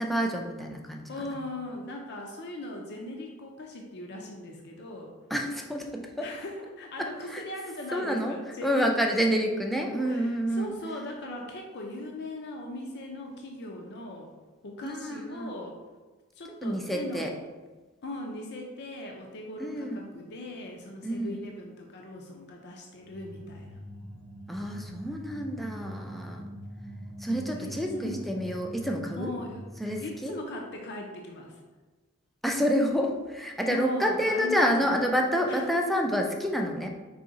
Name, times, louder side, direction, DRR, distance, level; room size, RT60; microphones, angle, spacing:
voice 1, 0.0-1.4 5.3-6.3 7.0-7.4 7.9-8.4 8.6-10.7 14.8-15.5 16.6-17.3 19.6-20.0 21.0-21.4 24.5-26.4 27.2-29.3 29.8-30.3 32.4-36.9, equal, ahead, 1 dB, 0.4 m, -28 dB
voice 2, 1.1-5.1 6.2-9.4 9.9-14.3 14.6-15.8 16.3-17.4 18.0-23.8 27.3-28.4 29.2-29.6 30.0-31.6 33.7-34.8 35.5-35.6, left 1 dB, 55° left, 1 dB, 0.5 m, -39 dB
sound 1, 23.0-30.3, equal, 75° right, 0.7 m, -43 dB
4.8 x 2.8 x 3.9 m, 1.3 s
head